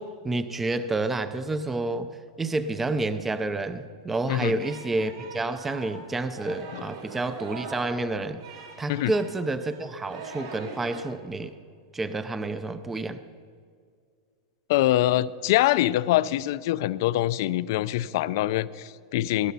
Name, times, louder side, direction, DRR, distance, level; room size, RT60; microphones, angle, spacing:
voice 1, 0.0-2.1 2.4-8.4 8.8-11.6 11.9-13.2, right 2 dB, 10° right, 12 dB, 0.5 m, -29 dB
Singing, 4.1-11.0, right 3 dB, 75° right, 4.8 m, -42 dB
voice 2, 4.3-4.6 6.7-6.8 8.9-9.1 14.7-19.5, left 15 dB, 55° left, 17 dB, 0.4 m, -24 dB
18.5 x 11.5 x 5.4 m, 2.1 s
supercardioid pair, 160°, 2 cm